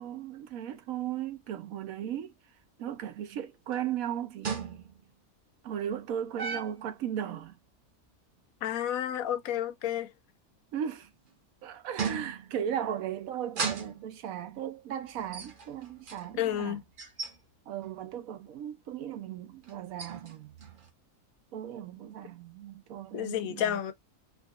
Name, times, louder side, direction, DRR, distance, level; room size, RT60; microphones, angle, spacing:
voice 1, 0.0-2.3 2.8-4.9 5.6-7.6 10.7-11.1 11.6-16.8 17.7-20.5 21.5-23.9, right 9 dB, 75° right, 1.1 m, -36 dB
sound 1, 3.7-3.8 4.4-5.1 6.4-6.9 11.0-11.4 12.0-12.7 13.4-14.2 15.2-17.4 17.8-18.1 19.6-20.9, right 5 dB, 45° right, 0.8 m, -37 dB
voice 2, 8.6-10.1 16.4-16.8 23.1-23.9, left 11 dB, 75° left, 1.0 m, -31 dB
3.6 x 2.5 x 2.3 m
omnidirectional pair, 1.5 m